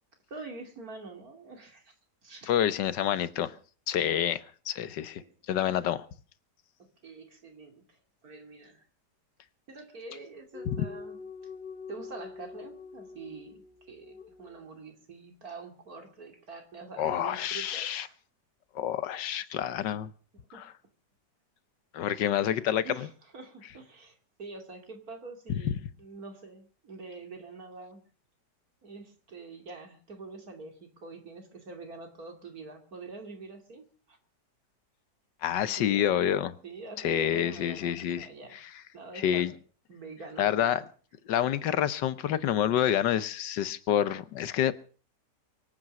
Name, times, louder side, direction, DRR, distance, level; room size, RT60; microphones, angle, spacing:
voice 1, 0.3-1.9 2.2-2.5 5.2-5.9 6.8-8.0 8.2-8.9 9.7-11.2 11.9-18.2 20.5-20.6 22.8-28.0 28.8-34.2 35.6-36.2 36.6-38.6 38.9-39.6 39.9-40.8, right 3 dB, 55° right, 5 dB, 3.1 m, -45 dB
voice 2, 2.5-3.5 3.9-5.2 5.5-6.1 10.7-10.9 17.0-18.1 18.8-20.1 20.5-20.7 21.9-23.1 25.5-25.8 35.4-36.6 37.0-38.7 39.2-39.5 40.4-40.8 41.3-44.7, left 10 dB, 85° left, 15 dB, 1.6 m, -28 dB
sound 1, 10.5-14.7, left 5 dB, 35° left, 0.9 m, -45 dB
24.0 x 9.0 x 6.5 m, 0.42 s
omnidirectional pair, 1.9 m